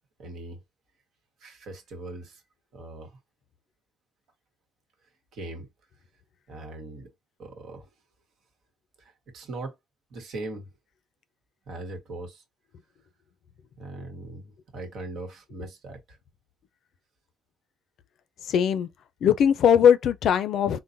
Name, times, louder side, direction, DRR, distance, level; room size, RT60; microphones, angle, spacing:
voice 1, 0.2-0.6 1.4-2.4 2.7-3.2 5.3-5.7 6.5-7.1 7.4-7.9 9.0-9.8 10.1-10.7 11.7-12.4 13.8-16.2, right 2 dB, 75° right, 1.1 m, -40 dB
voice 2, 18.5-18.9 19.2-20.8, left 8 dB, 70° left, 0.4 m, -20 dB
3.8 x 2.1 x 2.5 m
cardioid pair, 90°, 0 cm